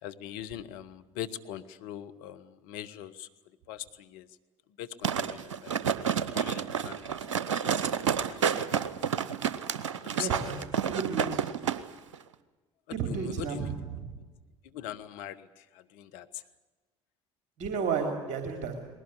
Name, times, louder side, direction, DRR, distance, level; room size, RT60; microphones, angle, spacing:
voice 1, 0.0-3.3 3.7-4.3 4.8-6.1 6.3-7.7 8.0-8.9 10.0-10.7 12.9-13.7 14.6-16.4, left 11 dB, 70° left, 10 dB, 1.3 m, -42 dB
sound 1, 5.0-11.8 12.1-12.2, right 7 dB, 90° right, 0.8 m, -30 dB
voice 2, 10.2-10.6 10.9-11.4 12.9-13.7 17.6-18.8, right 5 dB, 55° right, 4 dB, 3.1 m, -32 dB
20.5 x 18.0 x 10.0 m, 1.2 s
hypercardioid pair, 60°, 15 cm